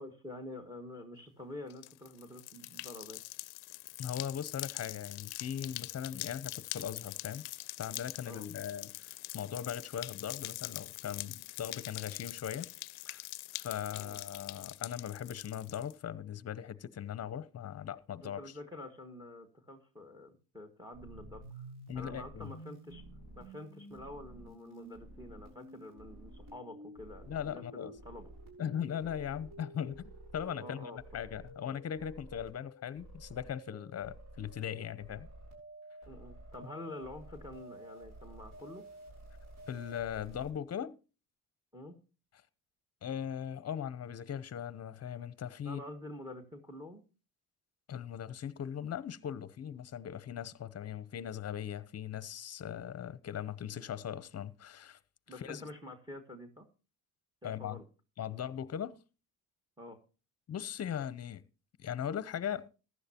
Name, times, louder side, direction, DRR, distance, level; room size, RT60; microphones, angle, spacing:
voice 1, 0.0-3.2 8.2-8.4 14.0-14.2 18.2-21.6 21.9-23.0 23.4-28.3 30.6-31.0 36.0-38.8 41.7-42.0 45.6-47.0 52.6-52.9 55.3-56.7 57.4-57.8 59.8-60.0, left 1 dB, 10° right, 1.7 m, -47 dB
sound 1, 1.7-15.9, left 20 dB, 80° left, 0.5 m, -44 dB
voice 2, 4.0-7.4 7.8-12.7 13.1-13.2 13.5-18.4 21.9-22.5 27.3-27.9 28.6-35.3 39.7-40.9 43.0-45.8 47.9-55.0 55.4-55.7 57.4-57.8 58.2-59.0 60.5-61.4 61.8-62.7, left 9 dB, 40° left, 0.8 m, -39 dB
sound 2, 20.9-40.5, right 1 dB, 55° right, 7.1 m, -51 dB
15.0 x 11.0 x 2.9 m
cardioid pair, 95°, 39 cm